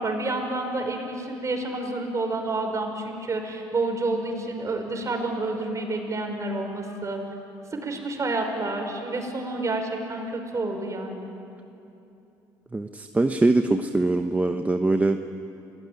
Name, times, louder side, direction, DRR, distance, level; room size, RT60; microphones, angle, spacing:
voice 1, 0.0-7.2 7.7-11.3, right 2 dB, 35° right, 3 dB, 5.6 m, -29 dB
voice 2, 12.7-15.2, right 2 dB, 15° right, 6 dB, 1.1 m, -22 dB
28.0 x 18.5 x 9.7 m, 2.8 s
supercardioid pair, 70°, 9 cm